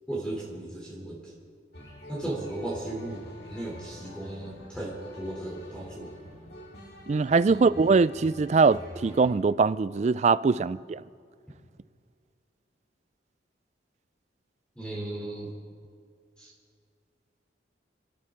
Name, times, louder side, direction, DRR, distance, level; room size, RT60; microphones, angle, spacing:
voice 1, 0.1-1.3 2.1-6.1 7.5-7.7 14.8-15.5 16.4-16.5, right 1 dB, 5° left, 3.3 m, -36 dB
sound 1, 1.7-9.3, left 1 dB, 60° left, 2.7 m, -46 dB
voice 2, 7.1-11.0, right 4 dB, 35° right, 0.3 m, -22 dB
28.5 x 12.5 x 3.8 m
head